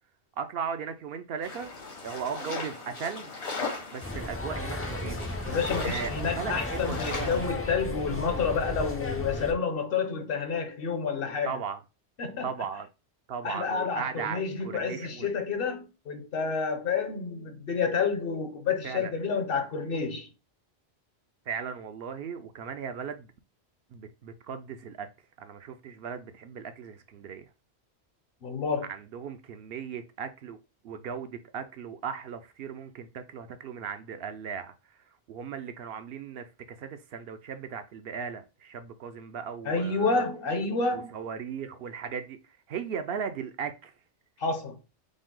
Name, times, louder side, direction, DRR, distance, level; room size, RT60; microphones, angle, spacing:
voice 1, 0.4-1.7 2.0-3.3 3.9-5.3 5.8-7.3 11.5-11.8 12.4-12.9 13.3-15.3 18.8-19.1 21.5-23.3 23.9-25.1 25.4-27.4 28.9-30.6 30.8-34.7 35.3-36.4 36.8-40.2 40.9-42.4 42.7-43.9, right 7 dB, 65° right, 0.7 m, -37 dB
sound 1, 1.4-7.5, left 4 dB, 75° left, 1.5 m, -38 dB
sound 2, 4.0-9.5, left 1 dB, 20° left, 0.3 m, -34 dB
voice 2, 5.4-11.6 12.2-12.5 13.4-20.3 28.4-28.9 39.6-41.1 44.4-44.8, left 5 dB, 60° left, 0.9 m, -29 dB
5.2 x 2.0 x 3.7 m
omnidirectional pair, 1.1 m